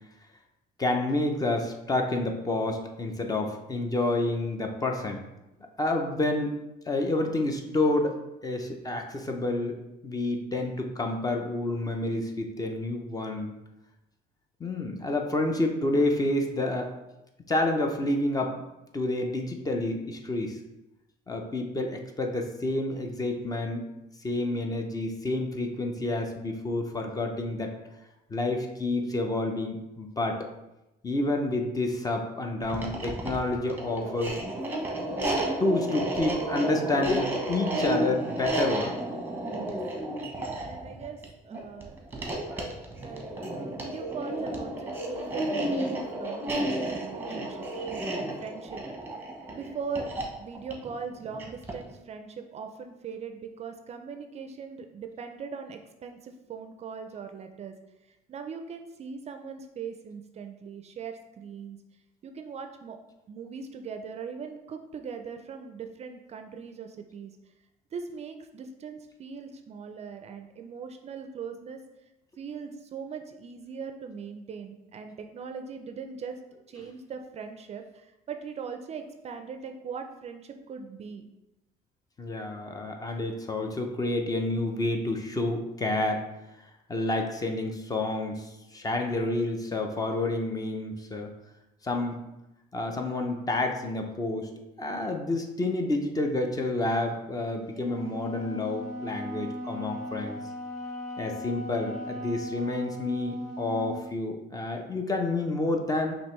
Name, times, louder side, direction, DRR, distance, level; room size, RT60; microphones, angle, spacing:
voice 1, 0.8-5.2 5.8-6.6 6.9-8.2 8.4-9.8 10.0-13.5 14.6-16.9 17.5-18.6 18.9-20.6 21.3-23.8 24.2-27.7 28.3-30.5 31.0-34.4 35.2-39.0 82.2-86.3 86.9-91.3 91.8-92.2 92.7-94.5 94.8-100.4 101.2-106.1, left 2 dB, 20° left, 3 dB, 0.6 m, -29 dB
sound 1, 32.6-51.9, right 1 dB, 10° right, 0.9 m, -32 dB
voice 2, 40.5-41.9 42.5-47.7 48.1-48.8 49.5-50.1 50.4-57.7 58.3-61.8 62.2-63.0 63.3-67.4 67.9-71.8 72.4-76.4 76.7-81.3, right 6 dB, 40° right, 6 dB, 0.4 m, -40 dB
Wind instrument woodwind instrument, 97.8-104.1, left 1 dB, 85° left, 0.7 m, -38 dB
5.2 x 2.9 x 3.1 m, 0.95 s
cardioid pair, 110°, 17 cm